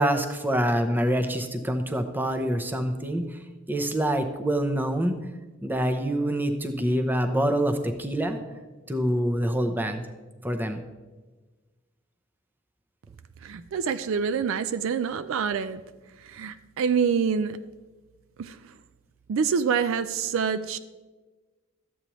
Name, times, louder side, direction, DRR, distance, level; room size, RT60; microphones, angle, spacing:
voice 1, 0.0-3.4 3.7-5.2 5.6-8.4 8.9-10.0 10.4-10.8, right 1 dB, 10° right, 0.6 m, -26 dB
voice 2, 13.4-15.8 16.2-17.6 18.4-18.6 19.3-20.8, right 6 dB, 65° right, 0.4 m, -26 dB
12.5 x 8.3 x 3.0 m
head